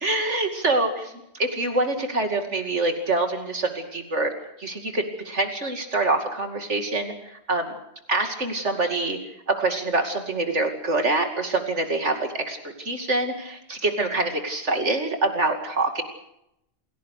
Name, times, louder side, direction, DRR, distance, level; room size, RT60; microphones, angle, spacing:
voice 1, 0.0-4.3 4.6-7.7 8.1-9.2 9.5-16.0, right 2 dB, 70° right, 5 dB, 2.8 m, -25 dB
28.5 x 17.5 x 6.6 m, 0.82 s
omnidirectional pair, 1.2 m